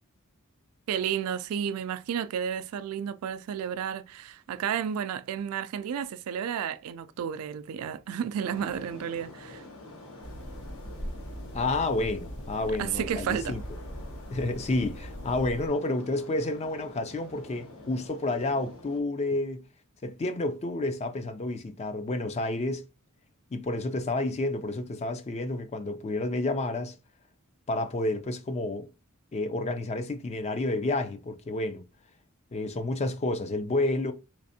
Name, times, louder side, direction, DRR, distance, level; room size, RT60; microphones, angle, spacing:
voice 1, 0.9-9.6 12.8-13.6, right 8 dB, 75° right, 0.3 m, -32 dB
sound 1, 8.4-19.0, left 2 dB, 75° left, 1.2 m, -47 dB
sound 2, 10.2-15.7, equal, 55° left, 0.8 m, -41 dB
voice 2, 11.5-13.6 14.3-19.6 20.0-22.8 23.5-26.9 27.7-28.9 29.3-31.8 32.5-34.1, left 2 dB, 30° left, 0.4 m, -30 dB
3.4 x 3.2 x 2.7 m
head